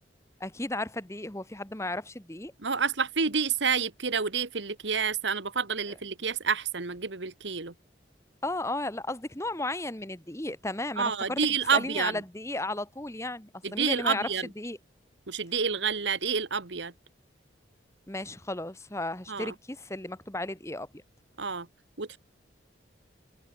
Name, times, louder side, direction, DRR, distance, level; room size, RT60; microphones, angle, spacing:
voice 1, 0.4-2.5 8.4-11.4 11.7-14.3 14.6-14.8 18.1-21.0, left 2 dB, 15° left, 1.6 m, -34 dB
voice 2, 2.6-7.7 11.0-12.2 13.6-14.5 15.3-16.9 19.3-19.5 21.4-21.7 22.0-22.2, right 5 dB, 70° right, 1.6 m, -29 dB
head